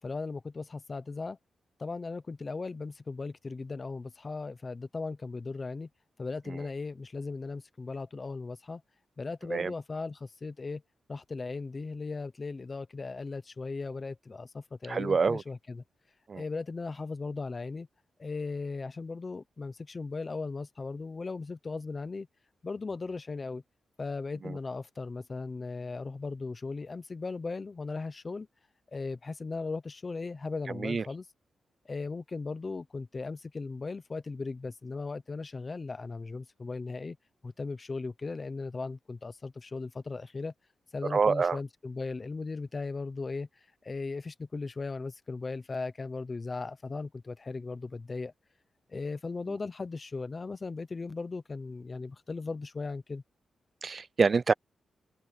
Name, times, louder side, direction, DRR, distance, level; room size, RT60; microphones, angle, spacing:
voice 1, 0.0-1.4 1.8-5.9 6.2-8.8 9.2-10.8 11.1-15.8 16.3-17.9 18.2-22.3 22.6-23.6 24.0-28.5 28.9-31.3 31.8-37.2 37.4-40.5 40.9-48.3 48.9-53.2, left 3 dB, 25° left, 0.8 m, -37 dB
voice 2, 14.9-15.4 16.3-16.4 30.8-31.0 41.1-41.6 53.8-54.5, right 5 dB, 35° right, 0.3 m, -26 dB
open air
wide cardioid pair, 165°, 0 cm